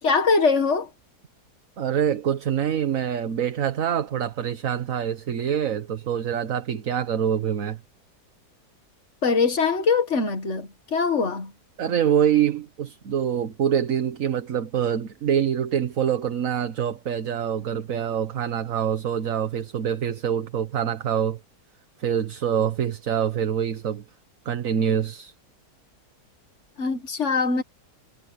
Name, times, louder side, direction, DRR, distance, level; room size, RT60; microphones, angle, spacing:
voice 1, 0.0-0.9 9.2-11.5 26.8-27.6, left 4 dB, 45° left, 2.0 m, -22 dB
voice 2, 1.8-7.8 11.8-21.4 22.0-24.0 24.4-25.3, right 9 dB, 55° right, 1.5 m, -25 dB
omnidirectional pair, 1.8 m